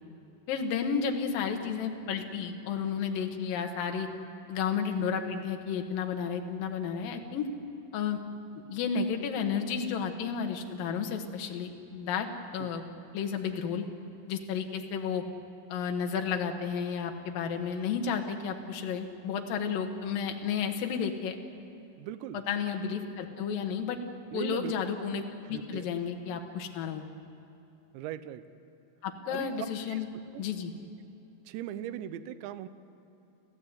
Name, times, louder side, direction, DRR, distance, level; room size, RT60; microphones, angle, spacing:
voice 1, 0.5-4.1 4.5-7.5 7.9-8.2 8.7-12.3 12.5-12.8 13.1-13.8 14.3-15.2 15.7-21.3 22.5-24.0 24.3-27.0 29.0-30.1 30.4-30.7, left 6 dB, 65° left, 4 dB, 2.3 m, -32 dB
voice 2, 22.0-22.4 24.3-24.8 25.1-25.9 27.9-28.4 29.3-30.0 30.3-30.4 31.5-32.7, right 12 dB, 85° right, 11 dB, 2.6 m, -39 dB
30.0 x 15.0 x 8.1 m, 2.9 s
omnidirectional pair, 6.0 m